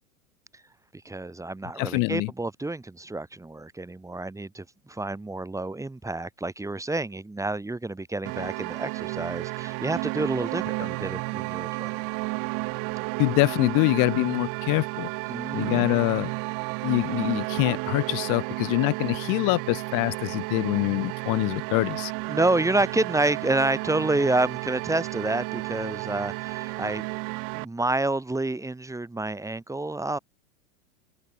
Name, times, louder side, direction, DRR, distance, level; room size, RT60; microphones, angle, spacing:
voice 1, 1.0-12.0 15.3-16.1 22.3-27.1 27.5-30.2, right 2 dB, 5° right, 4.4 m, -28 dB
voice 2, 1.8-2.3 10.8-10.9 13.2-15.1 15.5-16.3 16.8-22.1, left 28 dB, 45° left, 3.2 m, -25 dB
sound 1, 8.3-27.7, right 35 dB, 50° right, 4.1 m, -32 dB
hypercardioid pair, 100°, 43 cm